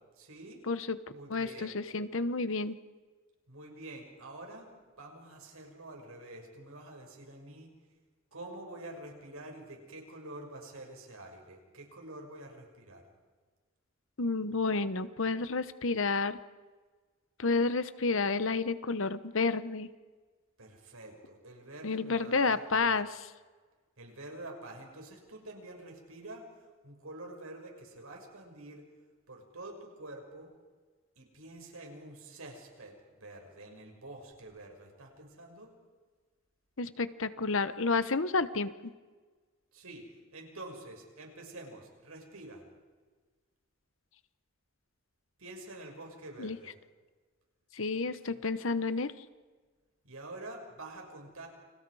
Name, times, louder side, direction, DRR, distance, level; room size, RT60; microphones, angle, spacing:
voice 1, 0.1-0.6 1.1-1.7 3.5-4.7 5.0-7.7 8.3-13.1 20.6-22.9 24.0-28.9 29.3-30.5 31.2-35.7 39.7-42.6 45.4-46.8 48.3-48.4 50.0-51.5, right 2 dB, 80° right, 2 dB, 6.2 m, -47 dB
voice 2, 0.7-1.0 1.3-2.8 14.2-16.4 17.4-19.9 21.8-23.1 36.8-38.9 46.4-46.6 47.7-49.1, left 3 dB, 65° left, 13 dB, 1.1 m, -30 dB
29.5 x 27.5 x 4.9 m, 1.4 s
head